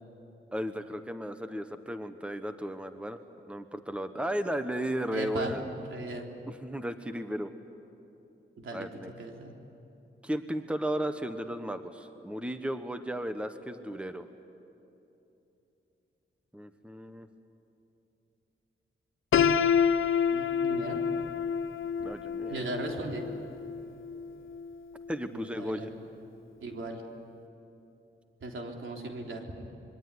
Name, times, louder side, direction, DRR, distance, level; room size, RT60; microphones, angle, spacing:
voice 1, 0.5-3.2 3.5-5.6 6.5-7.5 8.7-9.1 10.2-14.3 16.5-17.3 22.0-22.7 25.1-25.9, equal, 5° right, 8 dB, 1.3 m, -35 dB
voice 2, 5.1-5.6 5.9-6.3 8.6-8.9 9.2-9.5 20.3-21.0 22.5-23.3 25.3-25.9 26.6-27.0 28.4-29.6, right 2 dB, 75° right, 1 dB, 3.5 m, -37 dB
Piano, 19.3-25.2, left 7 dB, 80° left, 0.8 m, -28 dB
26.0 x 22.5 x 9.9 m, 2.9 s
cardioid pair, 80°, 21 cm